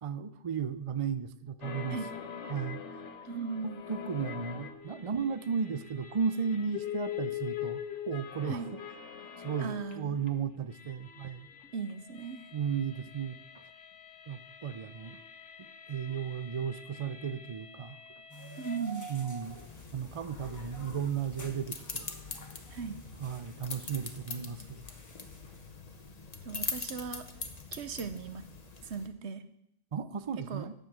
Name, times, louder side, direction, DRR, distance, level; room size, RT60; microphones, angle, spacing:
voice 1, 0.0-2.0 2.4-3.0 3.6-8.7 9.4-11.5 12.5-13.6 14.3-15.2 15.6-18.0 19.1-19.6 19.9-22.1 23.2-24.8 29.9-30.7, right 7 dB, 45° right, 13 dB, 0.5 m, -35 dB
sound 1, 1.6-10.3 10.6-18.8, left 9 dB, 90° left, 1.3 m, -43 dB
voice 2, 3.2-3.8 8.5-8.7 9.6-10.2 11.7-12.5 18.6-19.1 22.7-23.0 26.4-27.3 27.7-28.5 28.8-29.4 30.5-30.7, right 5 dB, 70° right, 11 dB, 1.1 m, -37 dB
sound 2, 18.3-25.7, right 1 dB, 15° left, 1.3 m, -50 dB
sound 3, 19.4-29.1, left 4 dB, 35° left, 1.1 m, -43 dB
10.5 x 7.5 x 6.1 m, 0.76 s
omnidirectional pair, 1.2 m